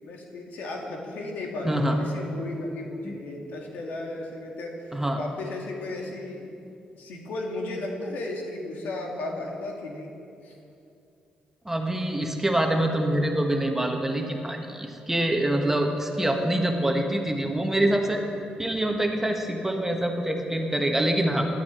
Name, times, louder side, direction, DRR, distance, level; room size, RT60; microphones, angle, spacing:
voice 1, 0.0-6.5 7.0-10.1 10.4-10.5, left 2 dB, 80° left, 0 dB, 2.2 m, -35 dB
voice 2, 1.6-2.0 3.0-3.1 4.9-5.2 11.6-18.2 18.6-21.4, right 1 dB, 10° right, 3 dB, 1.5 m, -25 dB
17.0 x 11.0 x 4.5 m, 2.6 s
cardioid pair, 85°, 3 cm